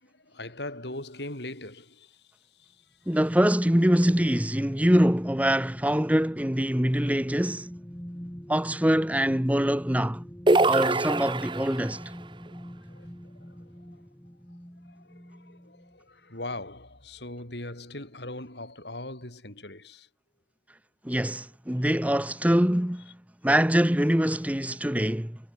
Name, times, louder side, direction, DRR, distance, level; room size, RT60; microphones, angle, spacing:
voice 1, 0.0-2.2 2.6-2.7 11.8-11.9 12.9-13.1 13.5-13.6 14.9-20.1, left 2 dB, 75° left, 6.9 m, -40 dB
sound 1, 3.0-16.0 16.4-16.6, equal, 10° left, 2.8 m, -45 dB
voice 2, 3.1-7.7 8.5-10.2 10.6-12.0 21.0-23.1 23.4-25.4, equal, 10° right, 1.2 m, -24 dB
sound 2, 10.5-12.0, right 2 dB, 25° right, 1.0 m, -23 dB
head